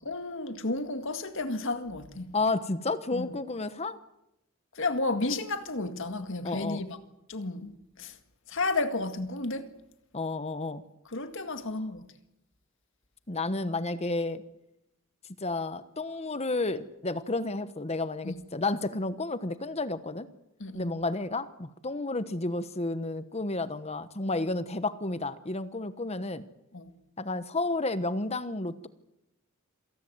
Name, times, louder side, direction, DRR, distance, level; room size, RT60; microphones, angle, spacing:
voice 1, 0.0-2.3 3.1-3.3 4.7-7.0 7.3-8.2 8.5-9.7 11.1-12.0 18.2-18.4 20.6-20.9 26.7-26.9, left 2 dB, 65° left, 2.0 m, -32 dB
voice 2, 2.3-4.0 6.4-6.8 10.1-10.8 13.3-14.4 15.4-20.3 20.7-26.4 27.2-28.9, left 2 dB, 30° left, 1.2 m, -31 dB
27.0 x 18.5 x 8.0 m
head